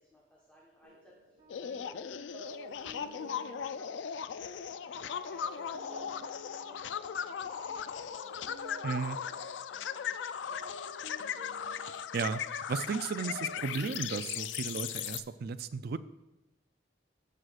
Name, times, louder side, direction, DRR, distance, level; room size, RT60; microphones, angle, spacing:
voice 1, 0.0-3.9 4.4-8.3 8.7-10.2 10.5-11.3, left 1 dB, 10° left, -5 dB, 1.2 m, -58 dB
sound 1, 0.8-1.8 2.3-7.5 7.8-12.8 13.1-15.2, equal, 80° right, 1.1 m, -52 dB
Bass guitar, 1.4-8.5, right 3 dB, 35° right, 3.2 m, -70 dB
sound 2, 1.5-15.2, left 8 dB, 80° left, 0.4 m, -38 dB
voice 2, 8.8-9.2 12.1-16.0, right 5 dB, 55° right, 13 dB, 0.4 m, -35 dB
15.0 x 6.2 x 2.5 m, 0.99 s
head